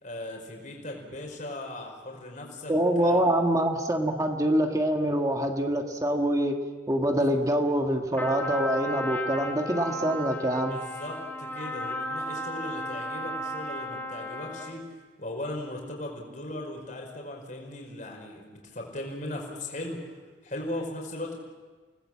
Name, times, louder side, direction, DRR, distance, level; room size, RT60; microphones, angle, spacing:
voice 1, 0.0-2.7 3.0-3.2 7.2-7.3 10.7-14.8 15.2-20.2 20.4-21.4, left 1 dB, 45° left, 0 dB, 5.2 m, -38 dB
voice 2, 2.7-6.6 6.9-10.8, right 1 dB, 20° right, 3 dB, 1.7 m, -25 dB
Trumpet, 8.1-14.8, equal, 10° left, 2.8 m, -34 dB
29.0 x 19.5 x 7.5 m, 1.4 s
head